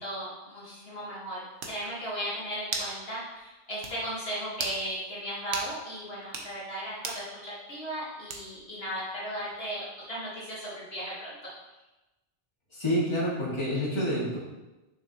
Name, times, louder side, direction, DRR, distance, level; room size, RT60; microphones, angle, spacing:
voice 1, 0.0-11.5, equal, 55° left, -7 dB, 1.6 m, -36 dB
sound 1, 1.2-1.3 1.6-1.8 2.7-3.0 3.3-3.4 3.8-4.0 4.5-4.8 5.5-5.7 6.2-6.5 7.0-7.2 8.3-8.6, right 4 dB, 85° right, 1.2 m, -35 dB
voice 2, 12.7-14.4, equal, 25° left, -7 dB, 2.0 m, -28 dB
6.8 x 5.8 x 2.9 m, 1.1 s
omnidirectional pair, 1.2 m